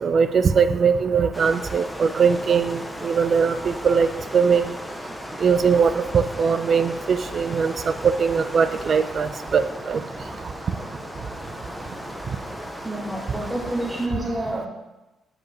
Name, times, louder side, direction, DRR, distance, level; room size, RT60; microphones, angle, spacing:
voice 1, 0.0-4.1 4.3-4.7 5.4-7.7 8.0-9.6 9.9-10.0, right 6 dB, 50° right, 12 dB, 0.4 m, -20 dB
sound 1, 1.3-14.1, left 1 dB, 10° left, 0.6 m, -37 dB
voice 2, 12.8-14.7, right 1 dB, 15° right, -2 dB, 1.6 m, -28 dB
7.2 x 5.2 x 3.1 m, 1.0 s
cardioid pair, 90°, 0 cm